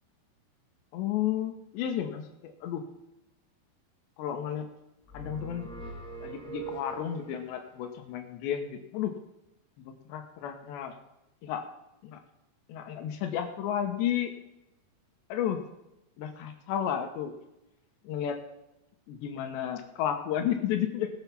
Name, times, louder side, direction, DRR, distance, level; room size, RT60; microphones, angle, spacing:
voice 1, 0.9-2.8 4.2-4.7 5.1-5.7 6.2-9.1 9.9-10.9 11.4-11.7 12.0-12.2 12.7-14.3 15.3-15.6 16.2-17.3 18.1-18.4 19.1-21.1, left 10 dB, 75° left, 6 dB, 3.1 m, -32 dB
sound 1, 5.1-7.5, right 2 dB, ahead, 1.3 m, -41 dB
19.0 x 7.1 x 5.7 m, 0.90 s
omnidirectional pair, 5.4 m